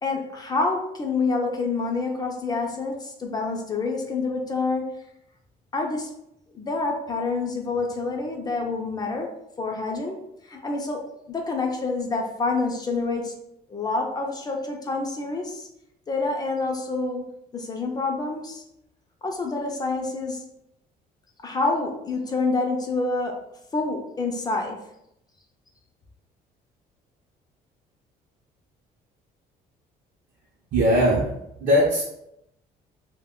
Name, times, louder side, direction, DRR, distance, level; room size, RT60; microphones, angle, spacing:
voice 1, 0.0-4.9 5.7-6.2 6.5-9.3 9.6-10.2 10.4-13.4 13.7-15.7 16.1-17.3 17.5-18.6 19.2-20.5 21.4-23.4 23.7-24.8, left 3 dB, 25° left, 1 dB, 0.4 m, -27 dB
voice 2, 30.7-31.3 31.6-32.0, equal, 50° right, -4 dB, 0.6 m, -19 dB
2.2 x 2.1 x 3.5 m, 0.80 s
cardioid pair, 135°, 17 cm